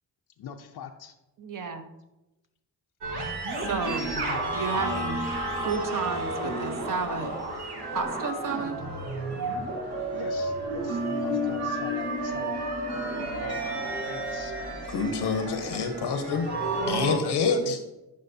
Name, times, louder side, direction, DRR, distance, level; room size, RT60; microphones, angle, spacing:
voice 1, 0.4-1.1 4.1-5.0 10.1-12.6 12.9-13.6 14.0-14.5 15.4-15.8 16.2-16.4 17.2-17.8, left 7 dB, 70° left, 4 dB, 0.6 m, -41 dB
voice 2, 1.4-1.9 3.7-4.1 4.5-5.2 5.5-7.3 7.9-8.7, right 5 dB, 50° right, 6 dB, 1.0 m, -31 dB
sound 1, 3.0-17.2, right 1 dB, 75° right, 1.5 m, -31 dB
voice 3, 14.9-16.5 16.9-17.8, left 4 dB, 85° left, 7 dB, 1.0 m, -27 dB
10.5 x 5.2 x 2.7 m, 0.97 s
cardioid pair, 65°, 40 cm